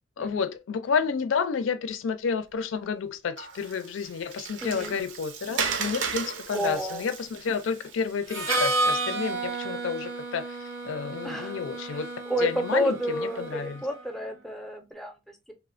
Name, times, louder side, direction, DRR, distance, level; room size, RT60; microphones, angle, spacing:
voice 1, 0.2-12.1 12.4-13.8, left 6 dB, 75° left, 0.4 m, -30 dB
Water, 3.4-8.7, right 5 dB, 65° right, 0.5 m, -35 dB
voice 2, 4.6-4.9 6.5-7.0 11.2-15.5, equal, ahead, 0.5 m, -31 dB
Harmonica, 8.3-14.0, right 2 dB, 90° right, 0.9 m, -31 dB
3.0 x 2.1 x 2.4 m
head